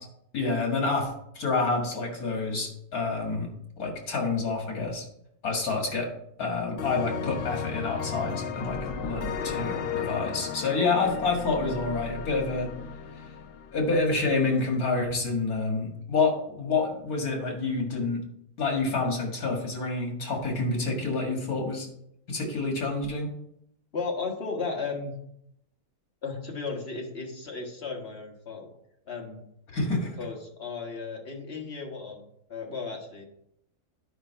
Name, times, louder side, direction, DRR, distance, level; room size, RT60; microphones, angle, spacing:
voice 1, 0.3-3.5 3.8-5.1 5.4-6.1 6.4-12.7 13.7-18.2 18.6-21.9 22.3-23.3 29.7-30.1, left 3 dB, 80° left, 1 dB, 2.3 m, -28 dB
sound 1, 6.8-14.4, left 7 dB, 65° left, 0.6 m, -35 dB
voice 2, 23.9-25.1 26.2-28.7 29.0-29.4 30.2-32.2 32.5-33.3, left 4 dB, 45° left, 0 dB, 1.7 m, -35 dB
10.5 x 5.2 x 4.5 m, 0.75 s
omnidirectional pair, 1.6 m